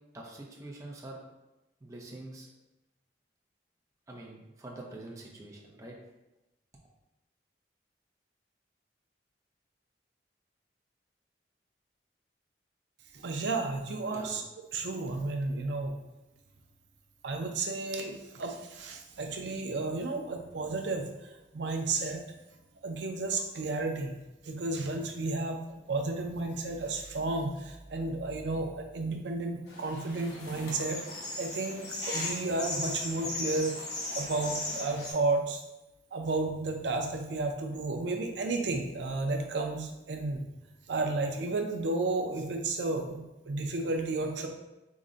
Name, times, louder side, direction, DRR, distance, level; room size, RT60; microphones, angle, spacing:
voice 1, 0.1-1.2 1.8-2.5 4.1-6.0 14.1-14.3, right 2 dB, 20° right, -2 dB, 0.5 m, -45 dB
voice 2, 13.1-14.4 14.7-15.9 17.2-21.0 21.5-22.2 22.8-24.1 24.4-25.6 25.9-33.7 34.2-35.6 36.1-40.4 40.9-44.5, right 3 dB, 80° right, 4 dB, 0.5 m, -32 dB
sound 1, 29.7-35.1, left 2 dB, 75° left, 0.9 m, -37 dB
3.7 x 2.1 x 3.8 m, 0.97 s
head